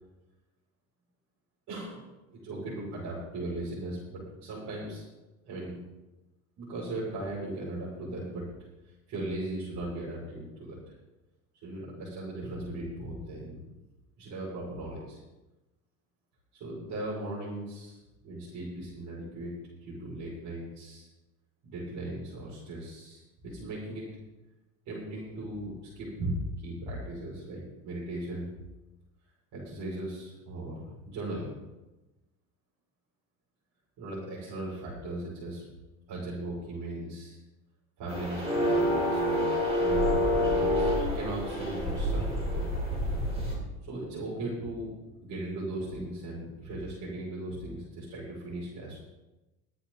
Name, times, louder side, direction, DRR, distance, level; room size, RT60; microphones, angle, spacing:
voice 1, 1.7-5.0 5.4-5.8 6.6-8.5 9.1-10.9 11.6-13.8 14.2-15.2 16.5-18.0 18.2-21.1 21.6-24.0 24.9-28.5 29.5-31.5 34.0-35.7 36.1-37.4 38.0-39.5 39.8-42.6 43.8-44.9 45.2-49.0, right 1 dB, 45° right, -8 dB, 6.0 m, -38 dB
sound 1, 38.1-43.6, equal, 15° right, 5.6 m, -27 dB
23.0 x 8.5 x 4.1 m, 1.0 s
supercardioid pair, 145°, 41 cm